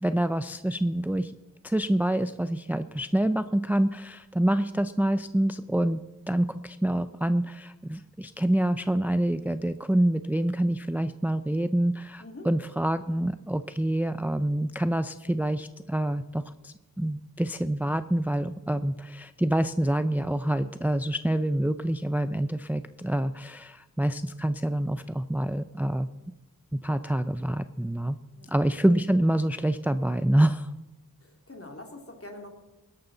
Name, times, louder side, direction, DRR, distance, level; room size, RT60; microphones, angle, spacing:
voice 1, 0.0-1.3 1.6-6.0 6.3-26.1 26.7-28.2 28.5-30.7, right 1 dB, 5° right, 11 dB, 0.5 m, -26 dB
voice 2, 31.2-32.5, left 2 dB, 40° left, 3 dB, 2.6 m, -44 dB
20.0 x 11.5 x 4.0 m, 1.1 s
wide cardioid pair, 50°, 35 cm